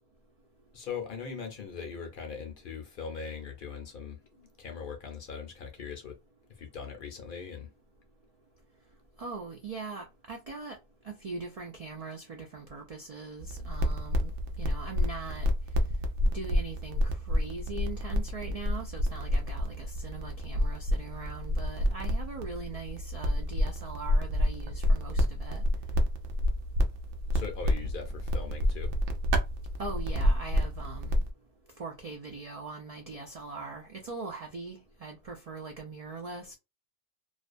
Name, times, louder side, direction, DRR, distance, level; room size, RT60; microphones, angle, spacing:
voice 1, 0.7-6.2 6.5-7.7 27.3-28.9, left 6 dB, 55° left, 0.7 m, -40 dB
voice 2, 9.2-10.8 11.0-14.3 14.6-15.5 16.3-25.6 29.8-31.2 31.8-36.5, right 4 dB, 65° right, 0.3 m, -41 dB
sound 1, 13.4-31.3, left 1 dB, 80° right, 0.9 m, -29 dB
2.4 x 2.2 x 2.4 m
omnidirectional pair, 1.2 m